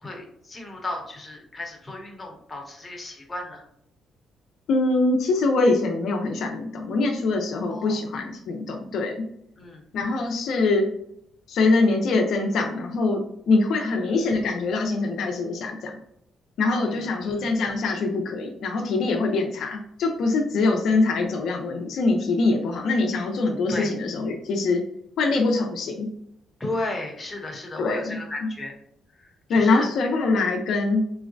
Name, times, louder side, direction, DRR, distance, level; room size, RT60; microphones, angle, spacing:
voice 1, 0.0-3.6 7.7-8.0 9.6-9.8 13.9-14.0 16.8-17.5 20.6-20.7 23.7-23.9 26.6-28.7 29.1-29.9, left 2 dB, 20° left, 0 dB, 0.9 m, -34 dB
voice 2, 4.7-9.2 9.9-10.9 11.5-13.2 13.5-16.0 16.6-24.8 25.2-26.1 27.8-28.2 29.5-31.0, left 3 dB, 75° left, 2 dB, 0.4 m, -23 dB
3.9 x 2.0 x 2.5 m, 0.72 s
cardioid pair, 90°, 0 cm